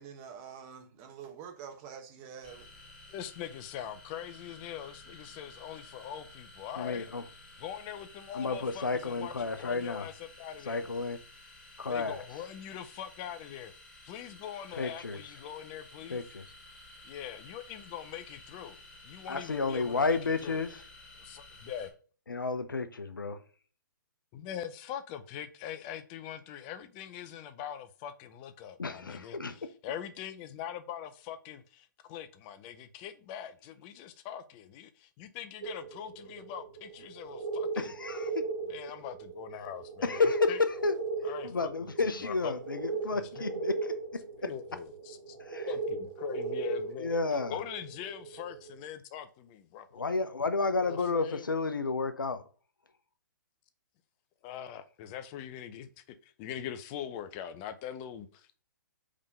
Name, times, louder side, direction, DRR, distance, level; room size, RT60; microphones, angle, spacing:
voice 1, 0.0-2.7, right 7 dB, 30° right, 1.2 m, -46 dB
sound 1, 2.4-21.9, left 2 dB, 10° left, 2.2 m, -53 dB
voice 2, 3.1-7.1 7.6-10.9 11.9-13.7 14.0-16.2 17.0-20.6 21.2-21.9 24.3-37.9 38.7-40.6 41.2-42.6 43.1-43.4 44.4-45.4 45.7-47.2 47.5-50.0 50.8-51.5 54.4-58.6, left 10 dB, 30° left, 0.6 m, -42 dB
voice 3, 6.8-7.2 8.3-10.1 10.7-11.2 11.8-12.2 14.7-15.2 16.1-16.4 19.3-20.8 22.3-23.4 28.8-29.5 37.8-38.4 40.0-41.0 41.4-44.2 45.4-45.7 47.0-47.6 49.9-52.4, left 3 dB, 85° left, 0.8 m, -31 dB
sound 2, 35.6-48.8, right 3 dB, 90° right, 1.5 m, -37 dB
5.0 x 3.6 x 5.5 m
hypercardioid pair, 130°, 11 cm